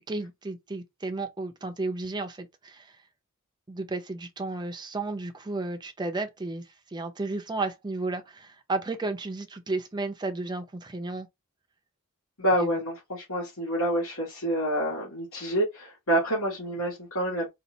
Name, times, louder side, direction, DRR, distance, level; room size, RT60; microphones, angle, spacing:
voice 1, 0.0-2.9 3.7-6.6 6.9-11.3 12.5-12.7, right 3 dB, 20° right, 0.6 m, -33 dB
voice 2, 12.4-17.5, right 1 dB, 75° left, 1.8 m, -28 dB
4.1 x 2.4 x 2.7 m
head